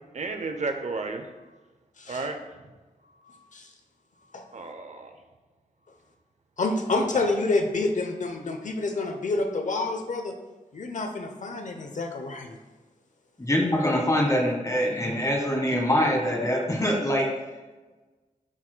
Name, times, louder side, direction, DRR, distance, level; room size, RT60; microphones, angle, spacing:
voice 1, 0.1-1.2 2.1-2.4 4.5-5.1, right 3 dB, 55° right, 6 dB, 0.7 m, -32 dB
voice 2, 2.0-2.3 3.5-3.7 4.3-4.4 6.6-10.3 10.7-12.6, left 3 dB, 60° left, 5 dB, 0.7 m, -28 dB
voice 3, 13.4-17.3, equal, 25° left, 1 dB, 1.4 m, -24 dB
11.0 x 4.3 x 2.2 m, 1.2 s
wide cardioid pair, 80°, 14 cm